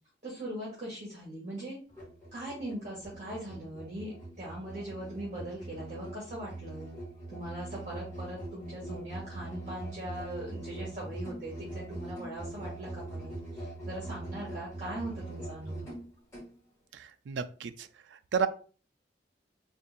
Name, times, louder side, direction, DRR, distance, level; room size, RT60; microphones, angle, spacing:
voice 1, 0.2-1.8 2.3-6.9 7.3-15.9, right 1 dB, 45° right, -6 dB, 1.4 m, -40 dB
Musical instrument, 1.9-16.5, right 2 dB, 15° left, 1.9 m, -42 dB
voice 2, 16.9-18.5, right 6 dB, 90° right, 12 dB, 0.4 m, -33 dB
3.6 x 2.6 x 4.0 m, 0.39 s
head